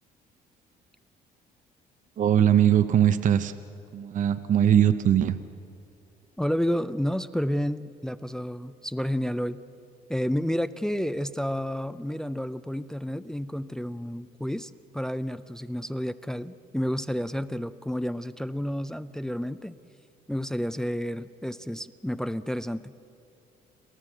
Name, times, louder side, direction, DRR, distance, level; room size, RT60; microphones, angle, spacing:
voice 1, 2.2-3.5 3.9-5.4, right 10 dB, 50° right, 11 dB, 0.7 m, -21 dB
voice 2, 6.4-9.6 10.1-19.8 20.3-22.9, equal, 5° left, 13 dB, 0.5 m, -30 dB
29.0 x 13.0 x 7.8 m, 2.8 s
cardioid pair, 110°, 17 cm